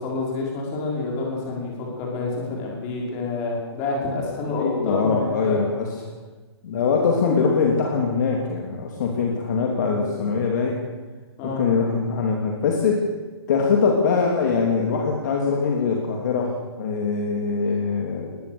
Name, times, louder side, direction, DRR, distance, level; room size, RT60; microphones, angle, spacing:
voice 1, 0.0-5.6 9.9-10.3 11.4-11.6, left 3 dB, 20° left, -2 dB, 5.6 m, -28 dB
voice 2, 4.6-5.9 6.6-10.8 11.4-13.0 13.5-18.5, left 5 dB, 40° left, 0 dB, 2.9 m, -22 dB
20.0 x 18.5 x 7.0 m, 1.3 s
hypercardioid pair, 170°, 14 cm